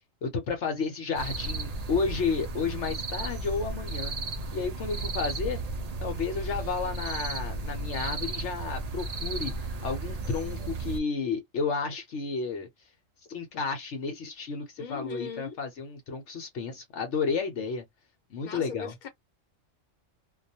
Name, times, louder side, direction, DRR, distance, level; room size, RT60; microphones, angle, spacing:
voice 1, 0.0-4.1 4.5-5.6 6.0-12.7 13.3-17.8 18.3-18.9, left 5 dB, 65° left, 1.0 m, -32 dB
sound 1, 1.1-11.0, right 3 dB, 75° right, 0.3 m, -34 dB
voice 2, 14.8-15.6 18.4-19.1, left 6 dB, 40° left, 0.9 m, -39 dB
2.3 x 2.3 x 2.7 m
omnidirectional pair, 1.3 m